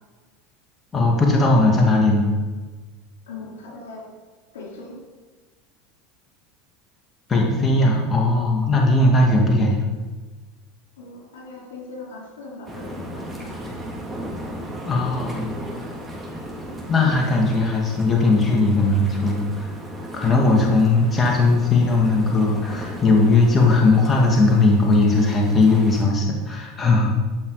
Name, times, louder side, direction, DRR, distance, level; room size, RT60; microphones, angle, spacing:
voice 1, 0.9-2.3 7.3-9.8 14.9-15.6 16.9-19.7 20.1-27.1, left 2 dB, 25° left, -1 dB, 2.1 m, -18 dB
voice 2, 3.3-4.1 4.5-5.0 11.0-13.6, left 3 dB, 80° left, -2 dB, 3.6 m, -39 dB
sound 1, 12.7-26.0, right 1 dB, 15° right, 3.2 m, -36 dB
13.0 x 5.9 x 4.9 m, 1.3 s
hypercardioid pair, 90°, 0 cm